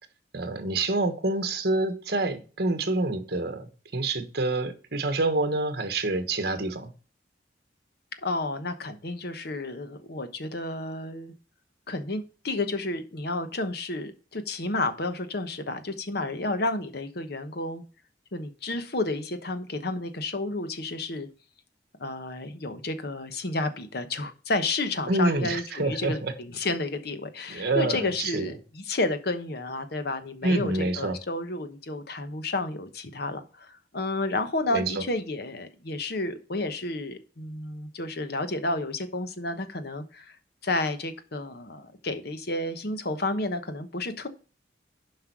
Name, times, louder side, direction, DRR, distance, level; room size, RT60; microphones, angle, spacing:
voice 1, 0.3-6.9 25.1-26.3 27.5-28.5 30.4-31.2 34.7-34.9, right 2 dB, 60° right, 1.4 m, -27 dB
voice 2, 8.2-11.3 11.9-17.8 18.3-21.3 22.0-40.4 40.6-44.3, left 2 dB, 60° left, 1.1 m, -31 dB
7.5 x 5.5 x 6.1 m
head